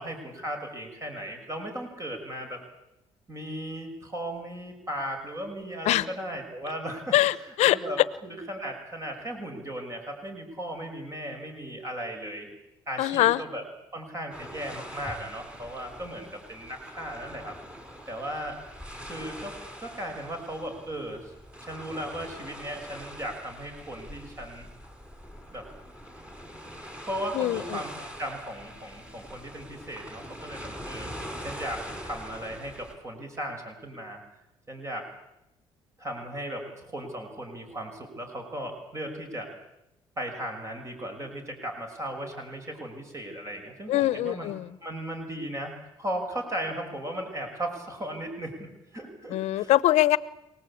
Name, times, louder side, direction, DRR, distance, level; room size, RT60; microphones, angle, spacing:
voice 1, 0.0-2.6 3.3-7.4 7.7-12.5 12.9-13.6 13.9-17.6 18.1-18.6 19.0-21.3 21.6-24.7 25.5-25.7 26.8-31.1 31.4-34.2 34.7-35.1 36.0-39.6 40.2-44.5 44.8-49.7, right 1 dB, 25° right, 3 dB, 6.0 m, -36 dB
voice 2, 7.1-7.8 13.0-13.4 27.3-27.8 43.9-44.8 49.3-50.2, left 15 dB, 85° left, 18 dB, 1.0 m, -23 dB
sound 1, 14.3-32.9, equal, 10° right, 5.5 m, -43 dB
28.5 x 19.5 x 8.6 m, 0.87 s
cardioid pair, 105°, 11 cm